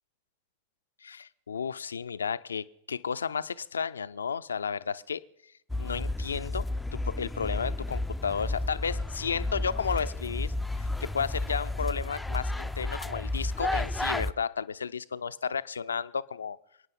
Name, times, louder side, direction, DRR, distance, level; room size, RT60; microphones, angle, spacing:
voice 1, 1.0-5.2 5.8-6.6 6.9-10.5 10.8-16.6, left 6 dB, 70° left, 14 dB, 0.5 m, -33 dB
sound 1, 5.7-14.3, left 2 dB, 5° left, 0.5 m, -32 dB
27.5 x 9.5 x 5.3 m, 0.77 s
figure-of-eight pair, 90°, 0 cm